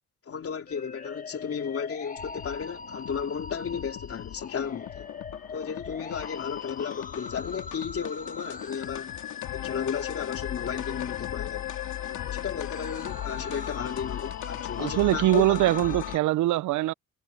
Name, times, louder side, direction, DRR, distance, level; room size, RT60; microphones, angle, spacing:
voice 1, 0.3-5.1 5.5-9.2 9.5-11.7 12.3-15.5, left 7 dB, 50° left, 3.2 m, -34 dB
sound 1, 0.7-16.2, left 5 dB, 25° left, 1.3 m, -41 dB
sound 2, 2.2-16.2, left 12 dB, 80° left, 2.6 m, -38 dB
voice 2, 14.8-16.9, right 16 dB, 75° right, 0.5 m, -23 dB
cardioid pair, 90°, 30 cm